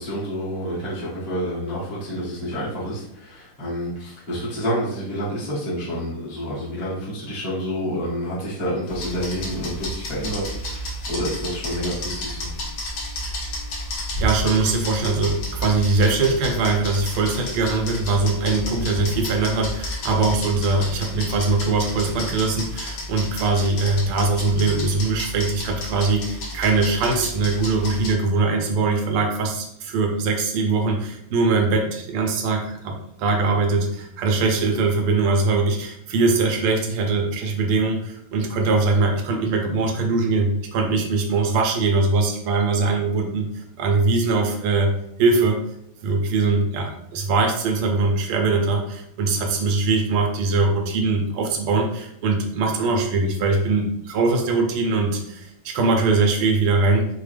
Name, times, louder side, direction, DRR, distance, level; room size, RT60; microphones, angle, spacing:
voice 1, 0.0-12.5, equal, 25° left, -9 dB, 0.9 m, -28 dB
sound 1, 8.9-28.1, left 1 dB, 65° left, 1.8 m, -31 dB
voice 2, 14.2-44.9 45.2-45.6 46.0-57.1, right 3 dB, 90° right, 2 dB, 1.6 m, -21 dB
5.4 x 2.1 x 3.3 m, 0.76 s
omnidirectional pair, 2.4 m